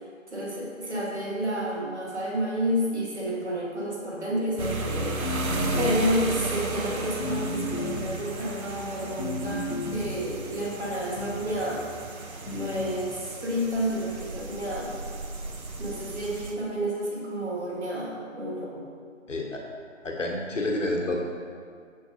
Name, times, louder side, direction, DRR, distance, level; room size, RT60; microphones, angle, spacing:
voice 1, 0.3-5.2 5.8-11.9 12.5-15.0 15.8-18.9, equal, 55° right, -3 dB, 1.4 m, -30 dB
sound 1, 4.6-16.5, right 2 dB, 90° right, 0.8 m, -34 dB
sound 2, 5.2-6.4 7.2-8.3 9.2-10.3 11.2-11.7 12.5-13.0, left 1 dB, 45° left, 0.6 m, -33 dB
voice 2, 19.3-19.6 20.0-21.2, left 1 dB, 60° left, 0 dB, 1.1 m, -29 dB
6.8 x 6.1 x 2.7 m, 2.1 s
figure-of-eight pair, 165°, 41 cm